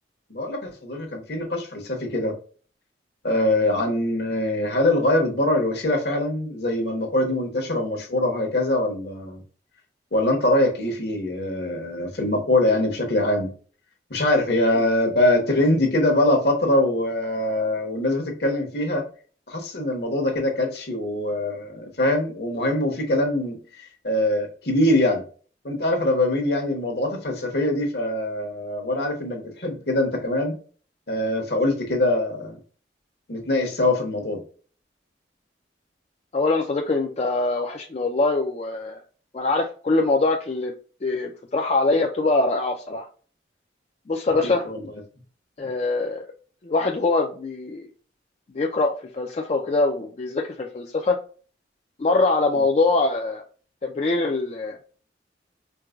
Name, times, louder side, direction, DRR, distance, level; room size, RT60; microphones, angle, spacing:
voice 1, 0.3-2.3 3.2-9.4 10.1-13.5 14.1-19.0 19.5-25.2 25.6-30.5 31.1-32.6 33.3-34.4 44.4-44.8, left 1 dB, 65° left, 2 dB, 1.0 m, -23 dB
voice 2, 36.3-39.0 39.3-40.7 41.0-43.1 44.1-44.7 45.6-46.3 46.6-47.9 48.5-51.2 52.0-53.4 53.8-54.8, left 3 dB, 35° left, 2 dB, 0.4 m, -23 dB
4.5 x 2.1 x 2.3 m, 0.40 s
head